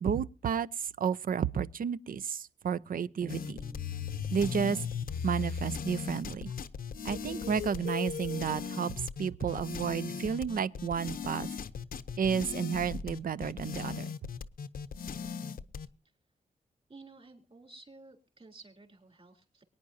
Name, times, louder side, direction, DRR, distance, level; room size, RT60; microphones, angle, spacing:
voice 1, 0.0-3.6 4.3-4.8 5.2-6.5 7.0-11.5 12.2-14.0, right 7 dB, 70° right, 0.6 m, -32 dB
Bass guitar, 3.2-6.8, equal, 10° right, 1.0 m, -51 dB
sound 1, 3.3-15.9, left 6 dB, 75° left, 0.8 m, -37 dB
voice 2, 16.9-19.6, right 3 dB, 40° right, 3.9 m, -53 dB
23.5 x 9.6 x 2.8 m
wide cardioid pair, 90°, 15 cm